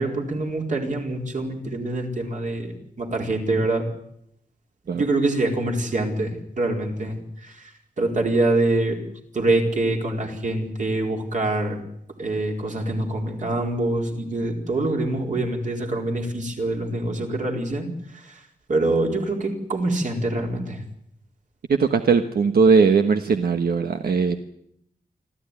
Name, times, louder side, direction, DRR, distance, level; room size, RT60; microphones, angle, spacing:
voice 1, 0.0-3.9 4.9-9.0 9.3-11.8 12.2-18.4 18.7-20.8, right 2 dB, 50° right, 2 dB, 4.4 m, -25 dB
voice 2, 21.7-24.4, right 5 dB, 70° right, 7 dB, 1.3 m, -19 dB
26.0 x 14.5 x 9.9 m, 0.76 s
wide cardioid pair, 150°, 16 cm